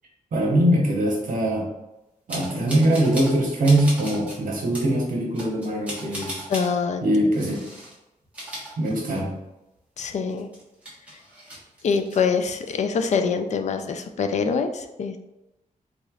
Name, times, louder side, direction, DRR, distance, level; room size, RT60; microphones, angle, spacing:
voice 1, 0.3-1.7 2.3-6.5 7.0-7.6 8.8-9.3, right 1 dB, 70° right, -1 dB, 1.1 m, -22 dB
sound 1, 2.3-3.4 3.6-4.4 4.7-4.9 5.3-6.7 7.3-7.9 8.2-9.4 9.8-9.9 10.3-12.2 12.5-13.1, right 1 dB, 10° right, 1.2 m, -37 dB
voice 2, 6.5-7.1 10.0-10.5 11.8-15.2, left 5 dB, 55° left, 7 dB, 0.4 m, -24 dB
3.8 x 3.2 x 2.4 m, 0.96 s
wide cardioid pair, 135°, 14 cm